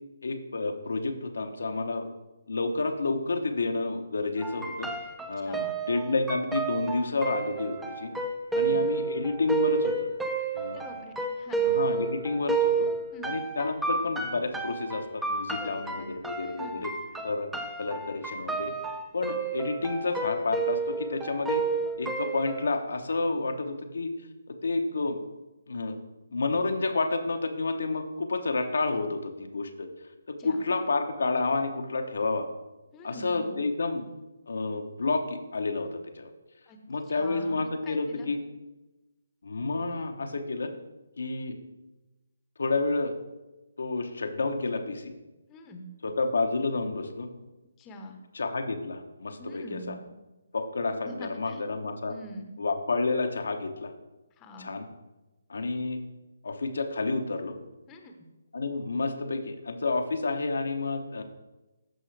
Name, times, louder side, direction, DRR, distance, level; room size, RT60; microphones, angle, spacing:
voice 1, 0.2-2.1 2.5-4.9 5.3-8.1 8.5-10.1 10.5-10.9 11.6-12.9 13.2-16.9 17.2-17.5 17.8-18.7 19.1-21.6 22.0-24.1 24.5-25.2 25.7-26.0 26.3-29.9 30.3-32.5 33.0-34.0 34.5-36.3 36.9-38.4 39.4-40.7 41.2-41.6 42.6-43.1 43.8-45.1 46.0-47.3 48.3-49.9 50.5-52.1 52.6-53.9 54.6-54.9 55.5-56.0 56.4-57.6 58.5-61.2, left 3 dB, 70° left, 5 dB, 0.9 m, -30 dB
sound 1, 4.4-22.7, right 4 dB, 5° right, 0.7 m, -31 dB
voice 2, 5.4-5.8 8.5-8.8 10.7-11.7 13.1-13.3 15.6-16.1 16.6-17.0 30.4-30.6 32.9-33.6 36.7-36.8 37.1-38.3 45.5-45.9 47.8-48.2 49.4-50.0 51.0-51.6 52.1-52.6 54.4-54.8 57.9-58.1, equal, 15° left, 4 dB, 1.0 m, -44 dB
14.0 x 5.5 x 3.3 m, 1.1 s
figure-of-eight pair, 145°, 0 cm